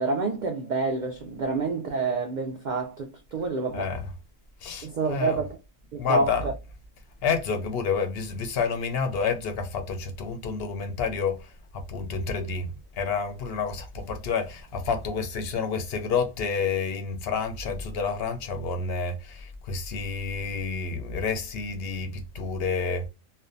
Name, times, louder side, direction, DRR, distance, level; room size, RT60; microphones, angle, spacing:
voice 1, 0.0-3.9 4.8-5.5 5.9-6.5, right 3 dB, 85° right, 0.4 m, -28 dB
voice 2, 3.7-4.1 4.6-5.4 6.0-6.5 7.2-12.7 12.9-23.0, left 5 dB, 60° left, 0.7 m, -29 dB
2.5 x 2.2 x 2.5 m
omnidirectional pair, 1.4 m